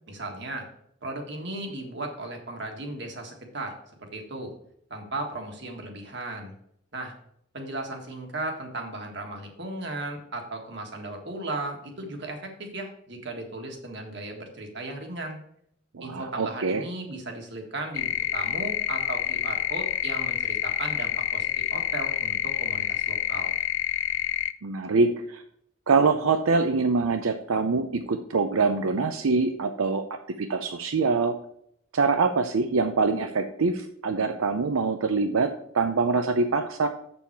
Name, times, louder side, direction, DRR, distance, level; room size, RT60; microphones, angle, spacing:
voice 1, 0.1-0.7 1.0-4.5 4.9-6.5 6.9-7.1 7.5-15.4 16.0-23.5, right 2 dB, 55° right, 3 dB, 1.6 m, -36 dB
voice 2, 15.9-16.9 24.6-25.4 25.9-31.3 31.9-36.9, right 4 dB, 85° right, 7 dB, 0.6 m, -24 dB
sound 1, 17.9-24.5, left 12 dB, 70° left, 0.4 m, -28 dB
7.2 x 7.0 x 4.6 m, 0.70 s
head